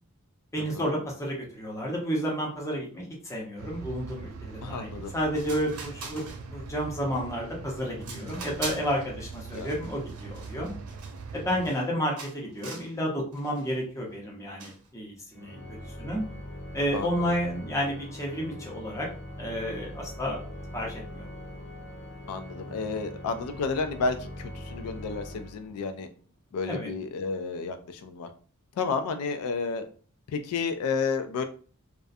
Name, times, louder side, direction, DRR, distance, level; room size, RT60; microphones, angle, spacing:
voice 1, 0.5-6.2 6.5-10.7 11.3-16.2 16.7-19.1 19.4-20.4 20.7-21.3 26.7-26.9, equal, 15° left, -3 dB, 0.6 m, -31 dB
sound 1, 3.6-11.7, right 4 dB, 70° right, 0.3 m, -42 dB
voice 2, 4.6-5.1 8.1-8.4 9.5-9.7 16.9-17.3 22.3-26.1 26.5-28.3 28.8-29.8 30.3-31.4, left 4 dB, 85° left, 8 dB, 0.3 m, -31 dB
sound 2, 5.1-5.2 5.4-6.7 7.1-7.5 8.0-9.0 9.3-11.9 12.2-12.9 13.3-13.7 14.6-14.9, right 4 dB, 90° right, 0.7 m, -42 dB
Organ, 15.3-26.1, left 1 dB, 55° left, 0.7 m, -42 dB
2.3 x 2.1 x 2.5 m, 0.42 s
head